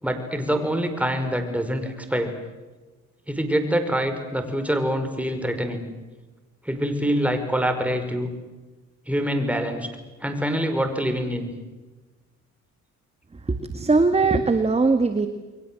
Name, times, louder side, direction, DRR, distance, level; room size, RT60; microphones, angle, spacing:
voice 1, 0.0-2.3 3.3-5.8 6.6-8.3 9.1-9.9 10.2-11.5, equal, 5° right, 6 dB, 5.6 m, -25 dB
voice 2, 13.5-15.3, right 3 dB, 20° right, 8 dB, 2.0 m, -20 dB
30.0 x 23.0 x 7.8 m, 1.2 s
cardioid pair, 90°, 30 cm